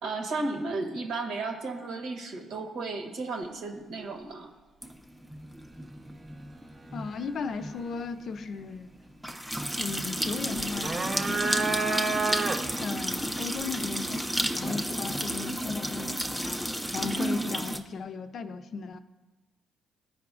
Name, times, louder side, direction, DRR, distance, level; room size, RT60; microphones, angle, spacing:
voice 1, 0.0-4.5 17.2-17.6, right 3 dB, 80° right, 3 dB, 1.1 m, -33 dB
sound 1, 4.8-17.8, equal, 5° right, 0.5 m, -33 dB
voice 2, 6.9-9.0 9.8-11.6 12.8-16.6 16.9-19.0, left 5 dB, 60° left, 9 dB, 0.5 m, -36 dB
sound 2, 10.6-12.9, right 3 dB, 40° right, 0.7 m, -29 dB
14.0 x 4.8 x 2.4 m, 1.2 s
cardioid pair, 90°, 0 cm